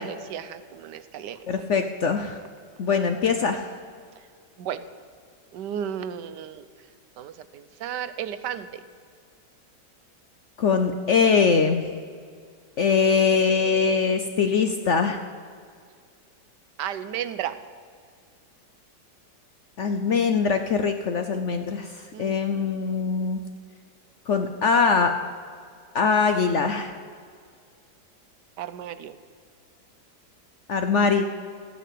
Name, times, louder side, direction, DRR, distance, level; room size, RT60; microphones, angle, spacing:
voice 1, 0.0-1.7 4.2-4.3 4.6-4.9 5.5-6.7 7.2-8.8 16.8-17.6 22.1-22.4 28.6-29.2, right 9 dB, 80° right, 12 dB, 1.3 m, -34 dB
voice 2, 1.5-2.4 2.8-3.6 10.6-11.8 12.8-15.2 19.8-21.9 22.2-23.4 24.3-25.1 25.9-26.9 30.7-31.2, left 5 dB, 60° left, 7 dB, 0.8 m, -22 dB
14.0 x 9.1 x 8.3 m, 2.1 s
omnidirectional pair, 1.9 m